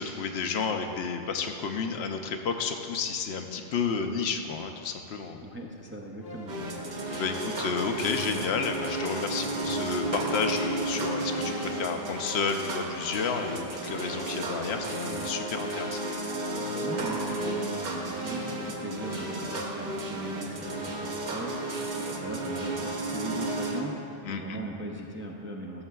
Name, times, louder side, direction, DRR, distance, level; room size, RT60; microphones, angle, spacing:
voice 1, 0.0-5.4 7.1-16.0 24.2-24.6, left 5 dB, 85° left, 5 dB, 0.8 m, -31 dB
voice 2, 5.4-6.6 16.8-25.8, right 1 dB, 20° right, -1 dB, 0.3 m, -39 dB
sound 1, 6.2-19.9, left 2 dB, 60° left, 1.0 m, -44 dB
sound 2, 6.5-23.8, right 2 dB, 50° right, 0.8 m, -33 dB
14.5 x 6.4 x 2.3 m, 2.7 s
omnidirectional pair, 1.1 m